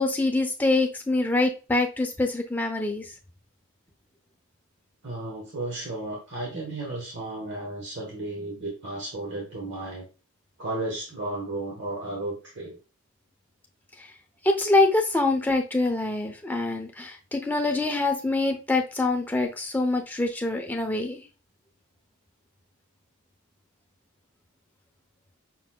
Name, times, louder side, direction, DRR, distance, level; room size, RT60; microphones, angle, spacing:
voice 1, 0.0-3.1 14.0-14.1 14.4-21.2, left 2 dB, 10° left, 2 dB, 0.6 m, -25 dB
voice 2, 5.0-10.1 10.6-12.8, right 2 dB, 55° right, -2 dB, 1.2 m, -34 dB
5.8 x 4.0 x 2.2 m, 0.33 s
head